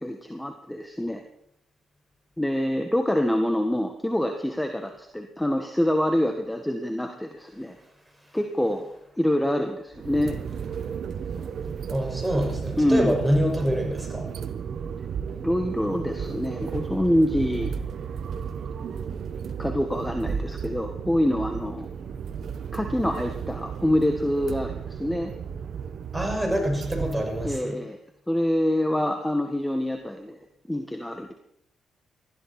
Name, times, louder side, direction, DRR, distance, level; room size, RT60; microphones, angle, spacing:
voice 1, 0.0-1.2 2.4-7.7 8.3-8.9 9.2-10.4 12.8-13.2 15.3-17.7 19.6-21.9 22.7-25.3 27.4-28.0 28.3-30.4 30.7-31.3, left 1 dB, 10° left, 5 dB, 1.8 m, -26 dB
sound 1, 9.9-27.6, right 7 dB, 65° right, 1.1 m, -34 dB
voice 2, 11.9-14.3 26.1-27.8, equal, 10° right, 2 dB, 6.2 m, -26 dB
19.5 x 14.0 x 4.5 m, 0.74 s
supercardioid pair, 65°, 0 cm